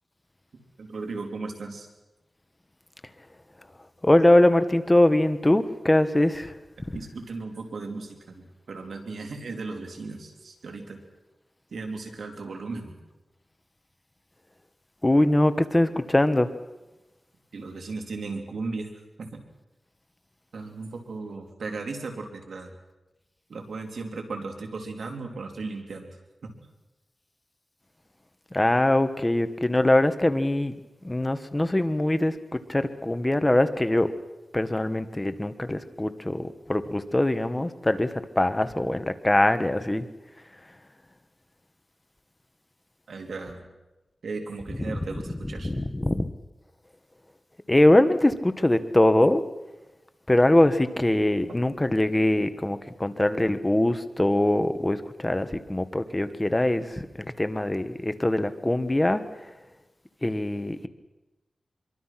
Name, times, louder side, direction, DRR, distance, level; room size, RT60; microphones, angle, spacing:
voice 1, 0.8-1.9 6.9-11.0 11.7-13.0 17.5-18.9 19.2-19.4 20.5-22.7 23.5-26.2 26.4-26.5 43.1-43.7 44.2-45.7, right 3 dB, 85° right, 3 dB, 3.6 m, -36 dB
voice 2, 4.0-6.5 15.0-16.5 28.5-30.7 31.0-32.4 32.7-34.1 34.5-40.0 44.9-45.0 45.6-46.3 47.7-49.4 50.3-59.2 60.2-60.9, left 1 dB, 20° left, 10 dB, 1.5 m, -22 dB
26.0 x 23.5 x 6.0 m, 1.0 s
wide cardioid pair, 65°, 0 cm